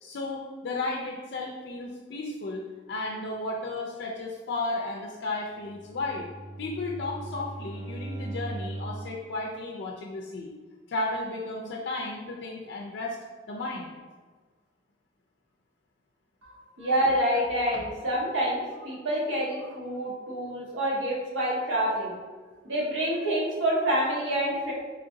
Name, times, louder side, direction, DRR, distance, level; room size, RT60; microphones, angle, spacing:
voice 1, 0.0-6.3 6.6-10.5 10.9-13.2 13.5-13.9 18.0-18.1, left 2 dB, 60° left, -1 dB, 0.4 m, -34 dB
Bowed string instrument, 5.5-9.1, right 2 dB, 5° left, 1.0 m, -38 dB
voice 2, 16.5-22.2 22.6-24.7, right 1 dB, 85° right, -4 dB, 1.0 m, -27 dB
3.8 x 3.1 x 2.6 m, 1.4 s
head